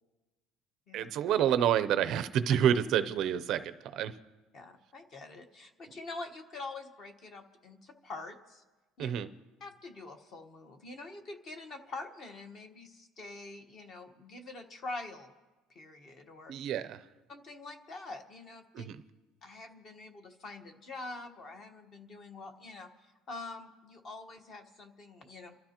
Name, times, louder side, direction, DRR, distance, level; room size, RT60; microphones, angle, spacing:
voice 1, 0.9-4.2 9.0-9.3 16.5-17.0 18.7-19.0, right 9 dB, 45° right, 11 dB, 0.5 m, -28 dB
voice 2, 4.5-8.6 9.0-9.1 9.6-15.3 15.7-16.5 17.3-18.9 19.4-22.9 23.3-25.6, left 3 dB, 30° left, 6 dB, 1.2 m, -45 dB
29.5 x 13.0 x 2.9 m, 1.2 s
cardioid pair, 175°, 0 cm